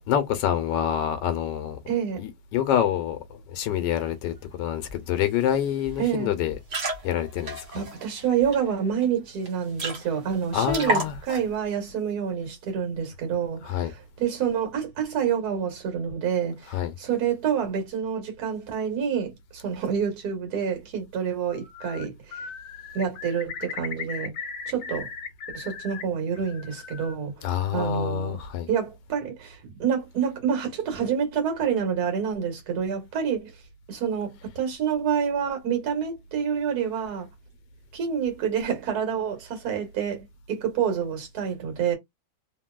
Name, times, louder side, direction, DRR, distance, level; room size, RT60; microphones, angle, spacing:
voice 1, 0.1-1.8 2.2-6.5 7.0-7.8 10.5-11.1 13.6-13.9 16.7-16.9 27.4-28.7, left 10 dB, 90° left, 1.3 m, -27 dB
voice 2, 1.9-2.2 6.0-6.3 7.7-22.5 22.9-24.3 24.7-25.1 25.5-28.4 28.7-33.5 33.9-37.3 37.9-42.0, right 7 dB, 65° right, 1.5 m, -28 dB
sound 1, 4.9-5.0 5.3-5.5 5.8-6.0 6.5-8.6 9.0-9.1 9.4-9.5 9.7-10.3 10.7-11.6, right 1 dB, 50° right, 1.3 m, -31 dB
Bird, 21.5-22.1 22.3-26.0 26.3-27.2, left 6 dB, 65° left, 1.1 m, -37 dB
3.0 x 2.7 x 2.2 m
omnidirectional pair, 1.9 m